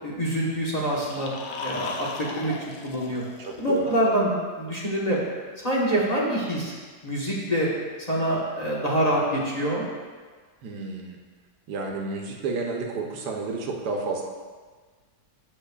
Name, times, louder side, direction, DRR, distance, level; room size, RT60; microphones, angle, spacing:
voice 1, 0.0-1.3 1.6-3.2 3.6-5.2 5.6-6.7 7.0-7.7 8.1-9.8, right 1 dB, 25° left, -5 dB, 1.2 m, -25 dB
sound 1, 0.8-4.0, left 5 dB, 70° left, 1.1 m, -37 dB
voice 2, 3.4-3.9 10.6-11.2 11.7-14.2, right 3 dB, 75° right, 1 dB, 1.4 m, -31 dB
14.0 x 5.6 x 2.3 m, 1.5 s
omnidirectional pair, 1.8 m